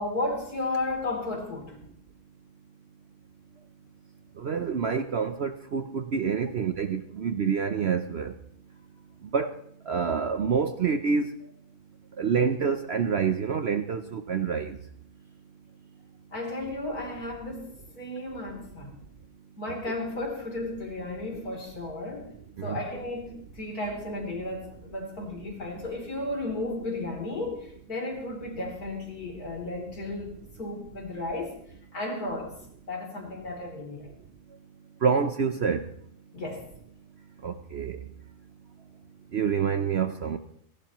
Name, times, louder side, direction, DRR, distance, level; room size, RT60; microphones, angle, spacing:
voice 1, 0.0-1.8 16.3-19.0 19.6-22.3 22.6-30.3 30.6-31.6 31.9-32.5 32.9-34.1 36.3-36.7, left 2 dB, 70° left, 1 dB, 3.8 m, -34 dB
voice 2, 4.4-8.3 9.3-9.5 9.9-11.3 12.2-14.7 22.6-22.8 35.0-35.8 37.4-37.9 39.3-40.4, right 6 dB, 55° right, 8 dB, 0.8 m, -27 dB
30.0 x 12.0 x 3.0 m, 0.68 s
omnidirectional pair, 1.7 m